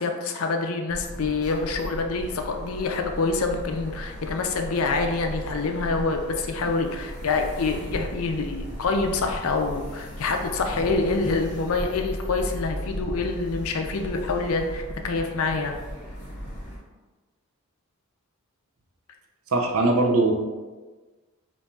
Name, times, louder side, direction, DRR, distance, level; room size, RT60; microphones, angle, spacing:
voice 1, 0.0-15.8, left 3 dB, 65° left, 4 dB, 0.5 m, -26 dB
sound 1, 0.9-16.8, equal, 35° left, 1.4 m, -36 dB
voice 2, 19.5-20.3, right 2 dB, 65° right, 2 dB, 0.6 m, -20 dB
5.5 x 2.6 x 2.3 m, 1.3 s
head